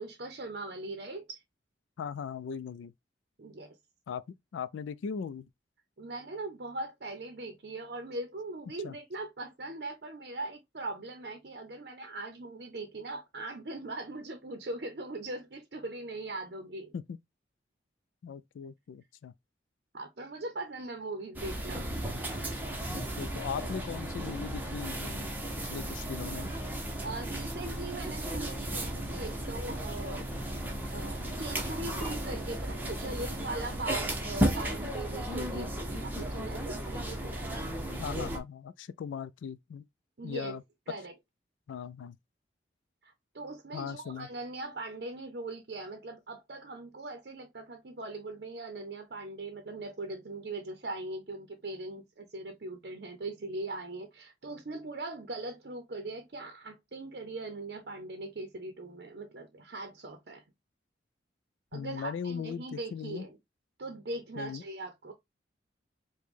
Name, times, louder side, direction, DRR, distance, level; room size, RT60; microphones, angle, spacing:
voice 1, 0.0-1.4 3.4-3.8 6.0-16.9 19.9-21.9 27.0-30.2 30.9-37.6 40.2-40.6 40.9-41.1 43.0-60.4 61.7-63.4 63.8-65.1, right 2 dB, 60° right, 0.6 m, -40 dB
voice 2, 2.0-2.9 4.1-5.5 8.8-8.9 16.9-17.2 18.2-19.3 22.9-25.2 25.6-26.5 37.9-39.8 40.2-40.6 41.7-42.2 43.7-44.3 61.7-63.2 64.4-64.6, left 6 dB, 90° left, 0.3 m, -39 dB
sound 1, 21.3-38.4, right 1 dB, 10° right, 0.7 m, -35 dB
5.1 x 2.2 x 3.2 m
head